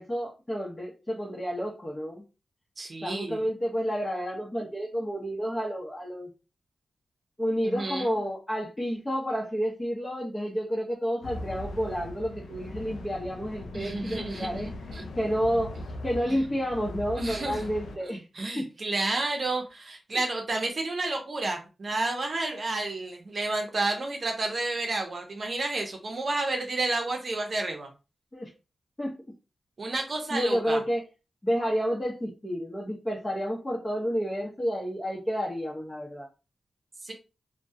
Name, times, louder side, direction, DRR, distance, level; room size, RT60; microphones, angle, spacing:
voice 1, 0.0-2.2 3.0-6.3 7.4-14.7 15.1-15.7 16.0-18.2 18.5-18.7 28.3-28.5 29.0-29.2 30.3-31.0 31.4-36.3, equal, 25° left, -4 dB, 0.8 m, -30 dB
voice 2, 2.8-3.4 7.6-8.2 13.7-15.1 16.3-16.4 17.1-17.6 18.0-27.9 29.8-30.8 37.0-37.1, right 2 dB, 55° right, 2 dB, 0.6 m, -31 dB
sound 1, 11.2-18.0, left 1 dB, 85° left, 0.3 m, -40 dB
2.2 x 2.1 x 2.7 m, 0.30 s
cardioid pair, 45°, 0 cm